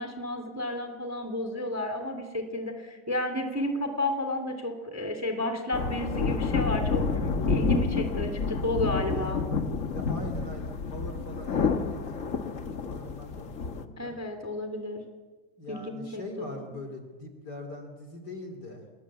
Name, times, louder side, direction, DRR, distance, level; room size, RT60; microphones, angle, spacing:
voice 1, 0.0-7.0 7.5-9.4 14.0-15.0 15.7-16.6, left 1 dB, 5° right, 6 dB, 2.6 m, -32 dB
sound 1, 5.7-13.8, left 4 dB, 80° left, 0.7 m, -29 dB
voice 2, 9.0-9.3 9.8-14.1 15.6-18.9, left 2 dB, 35° left, 5 dB, 2.9 m, -42 dB
29.5 x 21.0 x 8.4 m, 1.4 s
omnidirectional pair, 3.6 m